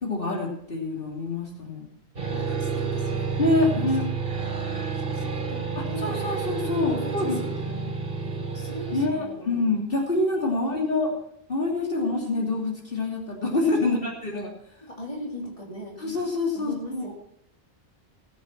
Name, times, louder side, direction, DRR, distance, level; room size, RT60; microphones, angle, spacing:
voice 1, 0.0-1.9 3.4-4.0 5.8-7.8 8.9-11.1 11.5-14.5 16.0-17.1, left 2 dB, 60° left, -1 dB, 3.1 m, -26 dB
sound 1, 2.2-9.1, right 5 dB, 60° right, 2.2 m, -30 dB
voice 2, 2.3-4.0 4.9-6.2 6.7-7.9 8.2-9.6 10.5-11.2 11.8-12.2 13.8-14.0 14.8-16.0 16.5-17.1, equal, 30° left, -1 dB, 3.3 m, -39 dB
19.0 x 8.1 x 6.0 m, 0.71 s
omnidirectional pair, 1.1 m